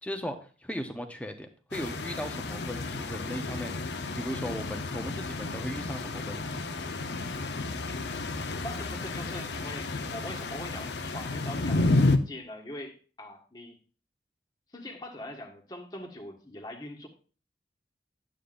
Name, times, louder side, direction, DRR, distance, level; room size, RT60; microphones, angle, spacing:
voice 1, 0.0-6.6, equal, 10° left, 5 dB, 0.9 m, -37 dB
sound 1, 1.7-12.2, left 2 dB, 80° left, 0.8 m, -31 dB
voice 2, 8.6-13.8 14.7-17.1, left 1 dB, 25° left, 1 dB, 1.5 m, -42 dB
11.5 x 8.4 x 2.6 m, 0.39 s
head